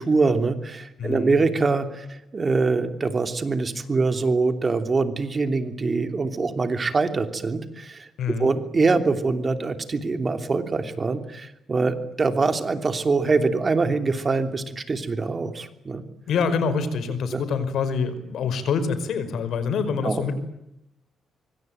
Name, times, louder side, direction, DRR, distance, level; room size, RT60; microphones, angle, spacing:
voice 1, 0.0-8.1 8.4-16.0 17.3-17.4 20.0-20.2, right 3 dB, 30° right, 8 dB, 3.0 m, -24 dB
voice 2, 1.0-1.4 8.2-8.5 16.3-20.3, left 5 dB, 70° left, 12 dB, 5.2 m, -26 dB
26.0 x 24.5 x 9.3 m, 0.85 s
cardioid pair, 120°, 0 cm